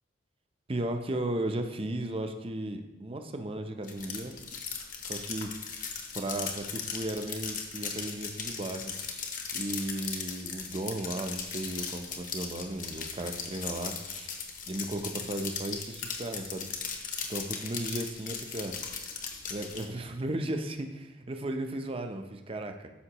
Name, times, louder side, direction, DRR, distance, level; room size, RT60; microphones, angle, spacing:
voice 1, 0.7-4.4 5.0-5.5 6.1-8.9 9.5-14.3 14.7-16.7 17.3-18.8 19.5-22.9, right 1 dB, 30° right, 6 dB, 0.6 m, -35 dB
sound 1, 3.8-19.8, left 6 dB, 45° left, 1.0 m, -38 dB
12.5 x 5.6 x 2.9 m, 1.1 s
head